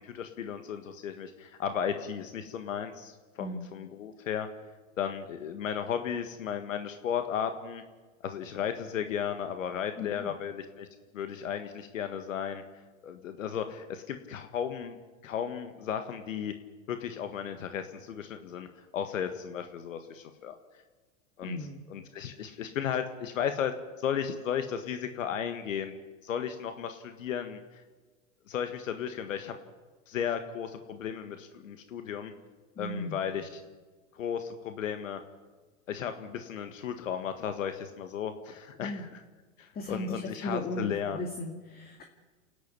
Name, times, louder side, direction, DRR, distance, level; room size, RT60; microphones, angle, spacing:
voice 1, 0.0-4.5 5.0-7.8 8.2-10.9 11.1-12.6 13.0-15.0 15.2-16.5 16.9-18.7 18.9-20.6 21.4-21.6 21.9-27.8 28.5-29.5 30.1-32.3 32.8-33.6 34.1-35.2 35.9-38.9 39.6-41.2, left 8 dB, 85° left, 8 dB, 1.7 m, -34 dB
voice 2, 10.0-10.3 21.4-21.8 32.8-33.2 38.8-39.1 39.7-42.0, left 1 dB, 25° left, 4 dB, 2.4 m, -36 dB
29.5 x 10.5 x 9.9 m, 1.3 s
hypercardioid pair, 110°, 38 cm